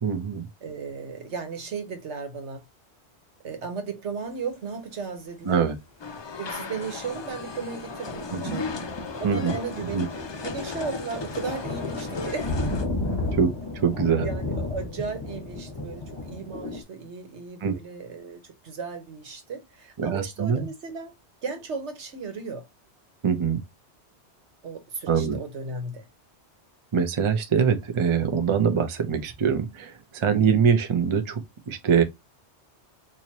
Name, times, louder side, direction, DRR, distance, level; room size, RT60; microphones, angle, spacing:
voice 1, 0.0-0.5 5.4-5.7 8.3-8.6 9.2-9.5 9.9-10.1 13.3-14.3 17.6-17.7 20.0-20.7 23.2-23.6 25.1-25.4 26.9-32.0, right 6 dB, 35° right, 0.6 m, -23 dB
voice 2, 0.6-2.6 3.4-5.6 6.4-8.8 9.2-10.1 10.4-12.5 14.2-21.1 21.4-22.7 24.6-26.1 30.2-30.6, right 5 dB, 80° right, 1.3 m, -35 dB
sound 1, 6.0-12.8, left 4 dB, 45° left, 0.3 m, -36 dB
sound 2, 7.0-16.8, left 2 dB, 25° left, 1.1 m, -33 dB
4.5 x 2.8 x 2.8 m
omnidirectional pair, 1.1 m